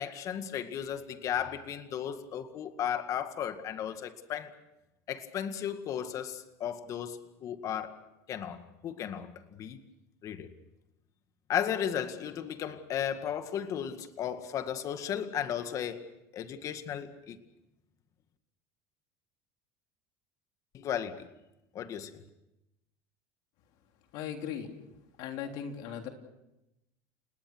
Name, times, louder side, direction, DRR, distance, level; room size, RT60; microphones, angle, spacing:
voice 1, 0.0-4.5 5.1-8.0 8.3-9.8 10.2-10.5 11.5-16.1 16.3-17.4 20.7-21.3 21.7-22.2, left 9 dB, 45° left, 2.0 m, -35 dB
voice 2, 24.1-24.7 25.2-26.1, left 8 dB, 65° left, 3.5 m, -37 dB
29.5 x 19.0 x 6.3 m
supercardioid pair, 120°, 8 cm